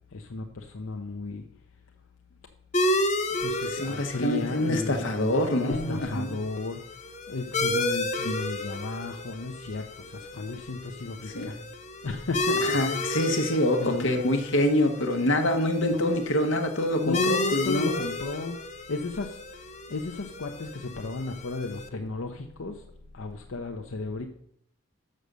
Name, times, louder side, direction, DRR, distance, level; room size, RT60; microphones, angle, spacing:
voice 1, 0.1-1.4 3.4-5.1 5.6-6.8 7.3-9.8 10.1-11.6 12.0-13.0 13.8-14.2 15.8-16.2 17.0-18.6 18.9-19.3 19.9-22.7 23.1-24.3, left 3 dB, 85° left, 4 dB, 0.7 m, -33 dB
sound 1, 2.7-21.9, left 1 dB, 35° left, 0.7 m, -32 dB
voice 2, 3.7-6.3 11.3-11.5 12.6-18.0, left 1 dB, 70° left, 5 dB, 1.2 m, -26 dB
6.5 x 6.3 x 6.7 m, 0.69 s
head